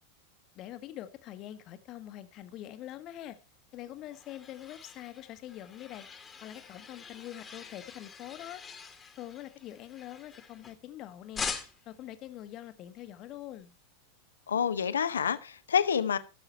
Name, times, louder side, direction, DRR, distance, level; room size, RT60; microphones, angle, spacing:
voice 1, 0.5-3.4 3.7-6.1 6.4-8.6 9.1-13.7, left 13 dB, 35° left, 1.2 m, -44 dB
sound 1, 3.6-10.9 11.3-12.0, left 5 dB, 15° left, 1.5 m, -43 dB
voice 2, 14.5-16.2, left 7 dB, 70° left, 0.7 m, -28 dB
14.0 x 7.0 x 4.4 m
figure-of-eight pair, 90°, 0 cm